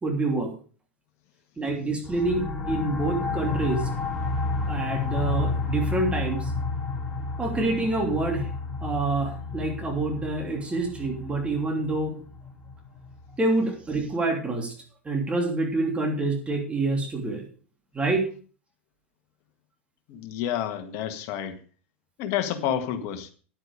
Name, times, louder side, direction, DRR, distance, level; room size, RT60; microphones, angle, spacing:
voice 1, 0.0-0.5 1.6-3.9 4.7-6.5 7.4-8.5 8.8-12.2 13.4-14.7 15.0-17.5 17.9-18.3, right 2 dB, 15° right, 2 dB, 2.9 m, -27 dB
sound 1, 2.0-13.4, left 3 dB, 15° left, 2.4 m, -31 dB
voice 2, 20.1-21.6 22.2-23.3, left 10 dB, 50° left, 8 dB, 1.6 m, -29 dB
10.0 x 9.0 x 4.9 m, 0.39 s
hypercardioid pair, 90°, 7 cm